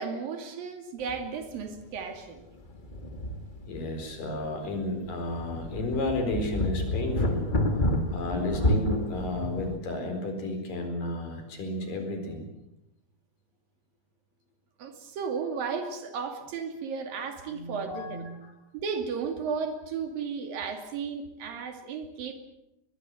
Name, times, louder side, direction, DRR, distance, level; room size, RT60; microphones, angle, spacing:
voice 1, 0.0-2.5 14.8-18.3 18.7-22.3, right 5 dB, 70° right, 6 dB, 4.2 m, -34 dB
sound 1, 1.1-1.3 1.6-1.7 2.6-4.0 4.4-4.5 5.0-9.8, left 1 dB, 25° left, 1.0 m, -29 dB
voice 2, 3.7-7.5 8.1-12.5 17.5-18.5, left 2 dB, 60° left, 5 dB, 6.0 m, -32 dB
22.5 x 21.0 x 7.8 m, 0.90 s
omnidirectional pair, 4.3 m